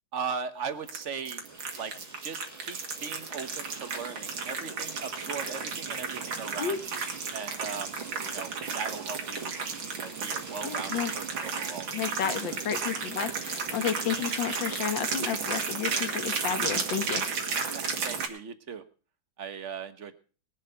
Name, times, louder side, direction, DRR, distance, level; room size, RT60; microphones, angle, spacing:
voice 1, 0.1-1.4 1.8-1.9 2.2-7.1 7.3-8.0 8.3-9.5 9.9-11.9 17.5-18.8 19.4-20.1, right 6 dB, 40° right, 10 dB, 1.4 m, -38 dB
sound 1, 0.8-18.3, right 5 dB, 85° right, 2.7 m, -33 dB
Domestic sounds home sounds, 1.3-15.0, right 1 dB, 10° right, 1.8 m, -49 dB
voice 2, 10.6-11.1 11.9-17.2, left 8 dB, 75° left, 9 dB, 2.1 m, -32 dB
21.0 x 7.4 x 5.6 m, 0.37 s
omnidirectional pair, 2.1 m